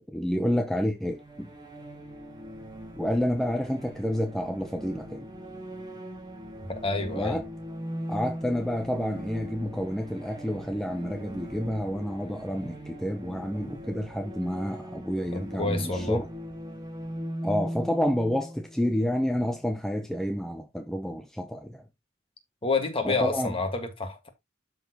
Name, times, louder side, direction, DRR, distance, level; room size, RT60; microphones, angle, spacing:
voice 1, 0.1-1.5 3.0-5.3 7.1-7.5 8.1-16.3 17.4-21.8 23.0-23.5, equal, ahead, 0.6 m, -29 dB
sound 1, 1.0-19.7, equal, 20° right, 1.6 m, -40 dB
voice 2, 6.7-7.4 15.3-16.2 22.6-24.3, left 3 dB, 30° left, 1.7 m, -29 dB
12.5 x 4.2 x 2.9 m
head